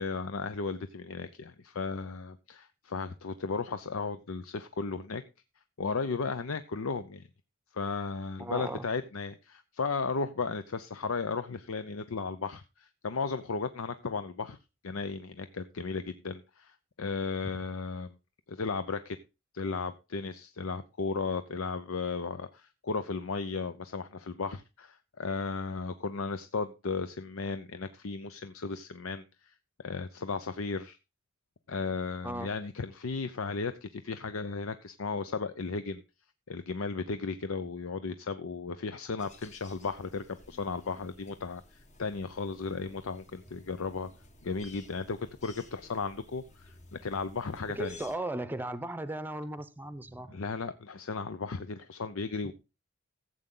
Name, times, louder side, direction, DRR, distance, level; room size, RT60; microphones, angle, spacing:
voice 1, 0.0-5.2 5.8-7.2 7.7-14.6 14.8-18.2 18.5-19.2 19.5-29.5 29.8-31.0 31.7-36.0 36.5-44.1 44.4-48.0 50.3-52.5, left 4 dB, 75° left, 0.7 m, -35 dB
voice 2, 8.4-8.9 32.2-32.5 47.7-50.3, right 1 dB, 10° right, 0.7 m, -36 dB
sound 1, 39.2-48.2, left 2 dB, 35° left, 1.2 m, -55 dB
15.0 x 7.8 x 3.8 m
head